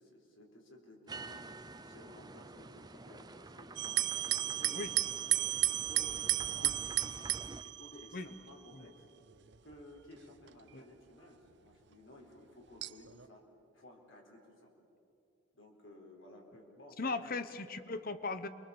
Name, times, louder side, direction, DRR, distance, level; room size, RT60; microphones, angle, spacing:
voice 1, 0.0-5.0 5.5-7.1 7.6-9.1 9.6-13.5 13.7-14.7 15.5-17.3, left 1 dB, 70° left, 0 dB, 4.2 m, -56 dB
sound 1, 1.1-7.6, right 3 dB, 20° right, 0.6 m, -49 dB
sound 2, 3.8-8.5 9.3-9.8 10.5-10.6 12.8-13.3, right 15 dB, 55° right, 0.6 m, -33 dB
voice 2, 17.0-18.5, left 3 dB, 45° left, 12 dB, 1.0 m, -38 dB
28.5 x 23.0 x 7.2 m, 3.0 s
head